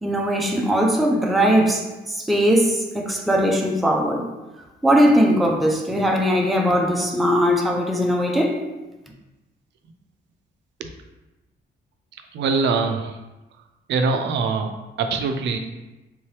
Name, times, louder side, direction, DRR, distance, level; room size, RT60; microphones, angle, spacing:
voice 1, 0.0-4.3 4.8-8.6, equal, ahead, 0 dB, 0.3 m, -20 dB
voice 2, 12.3-13.1 13.9-14.7 15.0-15.6, right 4 dB, 85° right, 6 dB, 0.4 m, -23 dB
3.6 x 2.8 x 3.1 m, 1.1 s
wide cardioid pair, 175°, 18 cm